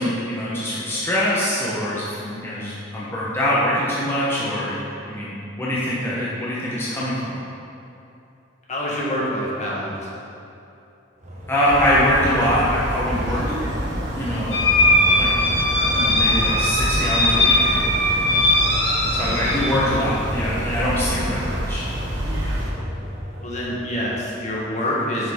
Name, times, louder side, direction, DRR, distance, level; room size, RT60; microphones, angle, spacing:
voice 1, 0.0-7.4 11.5-13.4 14.2-14.6 15.2-15.3 15.9-17.7 19.2-21.9, equal, 15° left, -8 dB, 1.0 m, -23 dB
voice 2, 8.7-9.9 23.4-25.3, equal, 40° left, -5 dB, 1.5 m, -26 dB
sound 1, 11.2-24.3, equal, 40° right, 1.3 m, -33 dB
sound 2, 11.7-22.7, equal, 75° right, 1.3 m, -28 dB
sound 3, 14.5-19.7, left 1 dB, 70° left, 1.7 m, -19 dB
7.8 x 6.5 x 3.7 m, 2.7 s
head